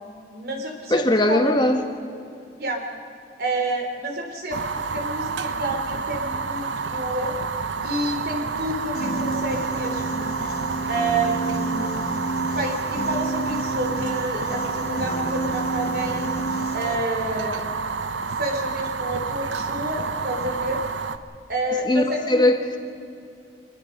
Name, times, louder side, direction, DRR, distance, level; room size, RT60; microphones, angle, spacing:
voice 1, 0.3-1.0 1.3-1.5 2.6-2.8 3.4-7.3 7.8-10.3 10.9-12.1 12.5-16.3 16.7-17.6 18.4-20.8 21.5-22.4 22.7-22.8, right 2 dB, 55° right, 3 dB, 3.5 m, -29 dB
voice 2, 0.9-1.8 21.8-22.8, left 1 dB, 25° left, 5 dB, 1.6 m, -20 dB
Fire, 4.5-21.2, right 4 dB, 85° right, 0.9 m, -29 dB
Piano, 8.9-17.0, right 1 dB, 55° left, 1.3 m, -30 dB
25.5 x 21.0 x 5.3 m, 2.5 s
head